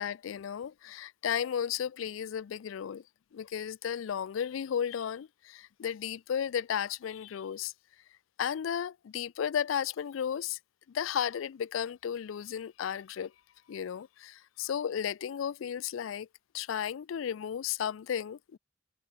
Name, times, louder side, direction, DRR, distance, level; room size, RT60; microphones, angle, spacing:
voice 1, 0.0-3.0 3.3-7.7 8.4-10.6 10.9-13.3 13.7-16.3 16.5-18.6, left 8 dB, 85° left, 0.4 m, -34 dB
head